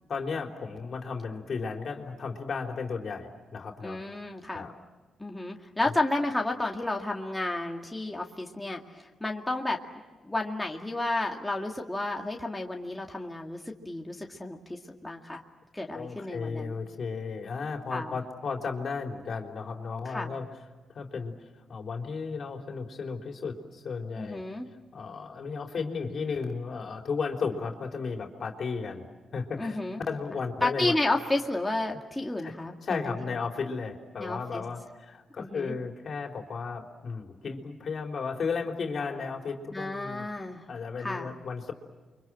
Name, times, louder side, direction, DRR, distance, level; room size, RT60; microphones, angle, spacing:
voice 1, 0.1-4.0 4.5-4.7 15.9-20.5 20.9-21.3 21.7-24.4 24.9-29.1 29.3-29.8 30.1-30.9 32.4-32.5 32.8-40.3 40.7-41.7, left 5 dB, 55° left, 3 dB, 3.8 m, -34 dB
voice 2, 3.8-4.7 5.2-9.8 10.2-15.4 15.7-16.8 17.9-18.1 20.0-20.3 24.2-24.7 29.6-30.0 30.6-33.3 34.2-34.6 35.4-35.7 39.7-40.7 41.0-41.3, left 2 dB, 10° left, 1 dB, 2.2 m, -32 dB
29.5 x 24.5 x 7.7 m, 1.3 s
cardioid pair, 90°, 0 cm